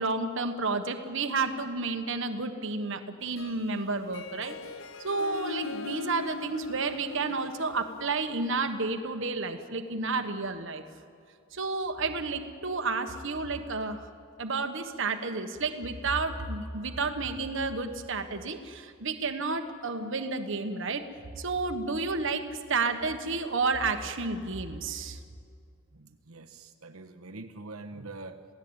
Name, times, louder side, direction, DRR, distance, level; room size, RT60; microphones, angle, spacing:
voice 1, 0.0-4.6 5.0-10.8 11.5-14.1 14.4-21.0 21.4-25.2, right 3 dB, 60° right, 7 dB, 1.4 m, -31 dB
Harp, 3.2-8.8, left 3 dB, 65° left, 0.7 m, -41 dB
voice 2, 25.9-28.5, right 2 dB, 90° right, 4 dB, 1.3 m, -44 dB
27.5 x 17.0 x 8.8 m, 2.3 s
head